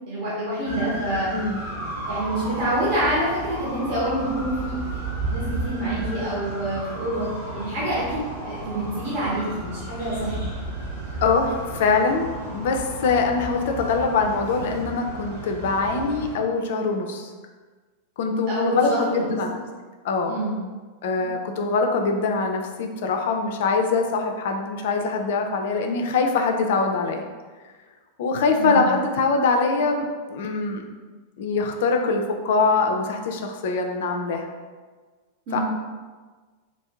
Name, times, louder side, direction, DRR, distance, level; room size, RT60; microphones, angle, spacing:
voice 1, 0.1-1.3 2.1-10.5 18.5-19.3 20.3-20.5 21.2-21.3 28.6-28.8 35.5-35.6, right 1 dB, 45° right, -8 dB, 1.0 m, -27 dB
sound 1, 0.6-16.4, right 1 dB, 70° right, 1.2 m, -33 dB
voice 2, 11.2-17.3 18.2-19.5 20.0-20.4 21.0-27.2 28.2-30.8 31.4-34.5 35.5-35.6, left 4 dB, 55° left, 3 dB, 0.4 m, -23 dB
3.0 x 2.6 x 3.4 m, 1.4 s
figure-of-eight pair, 90°, 0 cm